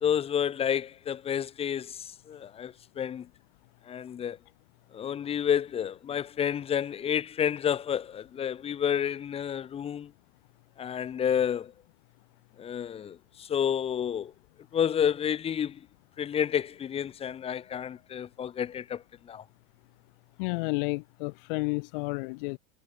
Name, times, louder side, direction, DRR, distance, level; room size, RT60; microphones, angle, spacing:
voice 1, 0.0-3.3 3.9-4.4 4.9-10.1 10.8-11.7 12.6-14.3 14.7-15.8 16.2-19.4, left 8 dB, 20° left, 1.1 m, -30 dB
voice 2, 20.4-22.6, left 29 dB, 55° left, 0.7 m, -31 dB
supercardioid pair, 160°, 32 cm